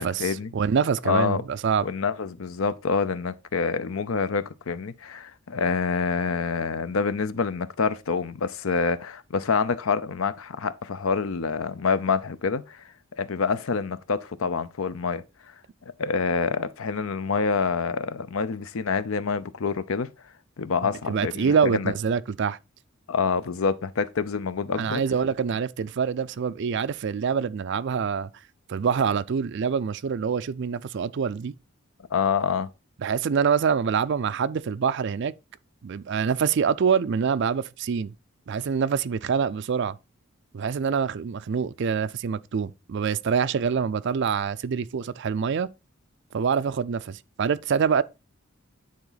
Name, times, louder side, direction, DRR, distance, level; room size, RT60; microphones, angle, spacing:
voice 1, 0.0-0.5 1.0-1.4 1.8-12.8 13.2-15.2 16.0-20.1 20.6-21.9 23.1-25.0 32.1-32.7, left 5 dB, 75° left, 0.6 m, -27 dB
voice 2, 0.5-1.9 21.1-22.6 24.8-28.3 28.7-31.5 33.0-35.3 35.8-38.1 38.5-40.0 40.5-45.7 46.3-48.0, right 6 dB, 55° right, 0.4 m, -25 dB
9.6 x 4.1 x 3.9 m
head